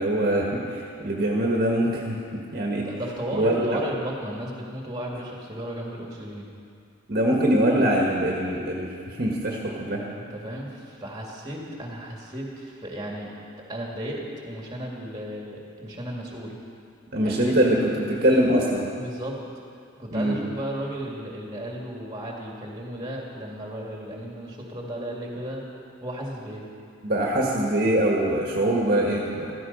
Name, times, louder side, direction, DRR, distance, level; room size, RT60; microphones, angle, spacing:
voice 1, 0.0-2.2 2.5-2.9 3.3-3.8 7.1-10.0 17.1-18.9 20.1-20.4 27.0-29.5, right 1 dB, 45° right, -2 dB, 1.7 m, -23 dB
voice 2, 2.8-6.5 10.2-13.3 13.7-16.6 17.2-17.7 19.0-19.4 20.0-25.6 26.0-26.7, right 1 dB, 20° right, -2 dB, 2.2 m, -34 dB
15.0 x 14.0 x 5.5 m, 2.3 s
head